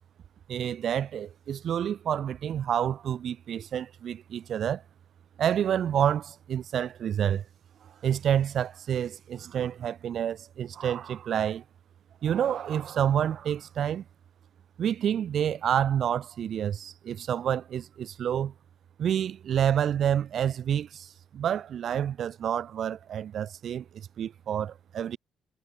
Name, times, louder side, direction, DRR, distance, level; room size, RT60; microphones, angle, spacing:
voice 1, 0.5-4.8 5.4-7.4 8.0-11.6 12.2-14.0 14.8-18.5 19.0-25.2, right 9 dB, 65° right, 1.2 m, -28 dB
cardioid pair, 90°, 0 cm